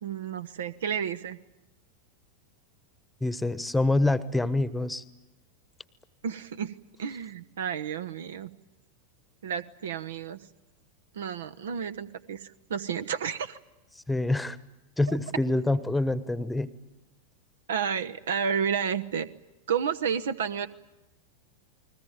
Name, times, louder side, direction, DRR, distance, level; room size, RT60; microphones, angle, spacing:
voice 1, 0.0-1.4 6.2-6.7 7.0-8.5 9.4-10.4 11.1-13.6 17.7-19.3 19.7-20.7, right 7 dB, 60° right, 13 dB, 1.0 m, -31 dB
voice 2, 3.2-5.0 14.1-14.6 15.0-16.7, left 2 dB, 5° left, 16 dB, 1.2 m, -26 dB
29.5 x 21.0 x 9.0 m, 1.0 s
figure-of-eight pair, 90°, 0 cm